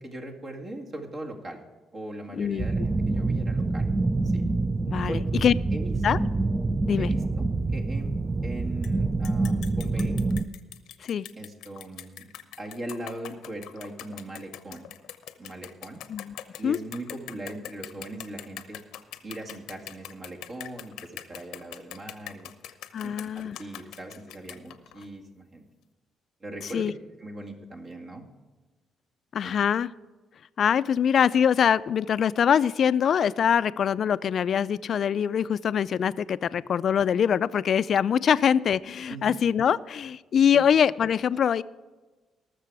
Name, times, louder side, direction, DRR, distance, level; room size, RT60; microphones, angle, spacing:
voice 1, 0.0-1.6 1.9-3.9 4.2-4.4 5.1-5.5 5.7-6.2 7.0-7.5 7.7-8.2 8.4-10.2 11.4-12.3 12.6-14.9 15.4-16.0 16.6-18.8 19.2-22.5 23.0-25.6 26.4-26.9 27.2-28.2 29.4-29.5 39.1-39.4 40.5-40.6, right 1 dB, 45° right, 1 dB, 2.0 m, -40 dB
voice 2, 2.4-2.9 4.9-5.5 6.0-6.2 6.9-7.1 11.0-11.3 16.1-16.3 16.6-16.8 22.9-23.6 26.7-26.9 29.3-29.9 30.6-41.6, left 8 dB, 60° left, 17 dB, 0.4 m, -23 dB
sound 1, 2.6-10.4, right 3 dB, 20° right, 0.5 m, -26 dB
sound 2, 8.8-8.9 9.2-25.1, left 12 dB, 90° left, 0.8 m, -42 dB
19.0 x 6.8 x 4.8 m, 1.3 s
cardioid pair, 90°, 0 cm